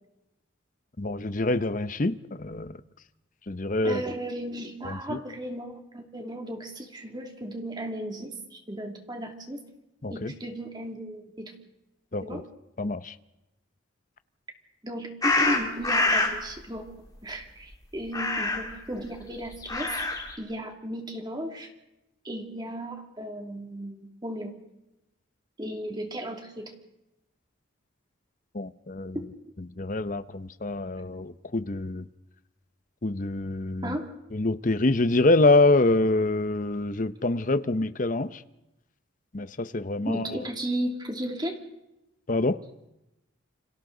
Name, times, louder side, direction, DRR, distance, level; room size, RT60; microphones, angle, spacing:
voice 1, 1.0-2.8 3.5-4.0 4.8-5.2 10.0-10.3 12.1-12.4 12.8-13.2 28.5-29.2 29.8-32.1 33.0-34.0 34.3-38.4 39.3-40.3 42.3-42.6, left 2 dB, 40° left, 13 dB, 0.8 m, -25 dB
voice 2, 3.8-9.6 10.1-11.5 12.2-12.4 14.8-19.9 20.4-21.7 22.2-24.5 25.6-26.7 29.1-29.2 33.8-34.0 40.1-41.6, right 1 dB, 20° right, 3 dB, 2.5 m, -35 dB
sound 1, 15.2-16.4 18.1-18.8 19.5-20.4, left 2 dB, 20° left, 2.4 m, -25 dB
29.5 x 26.0 x 3.9 m, 0.92 s
head